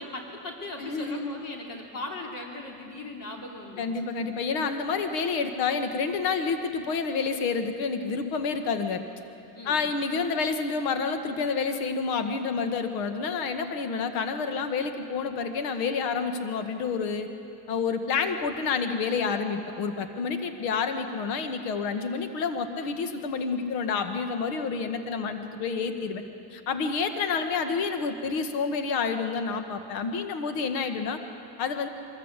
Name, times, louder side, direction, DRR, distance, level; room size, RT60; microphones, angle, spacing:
voice 1, 0.0-4.1 9.5-9.8, left 2 dB, 45° left, 1 dB, 3.3 m, -38 dB
voice 2, 0.8-1.4 3.8-9.0 9.7-17.3 17.7-26.2 26.5-31.2 31.6-31.9, left 5 dB, 70° left, 8 dB, 1.9 m, -29 dB
23.0 x 14.0 x 8.4 m, 2.7 s
supercardioid pair, 115°, 47 cm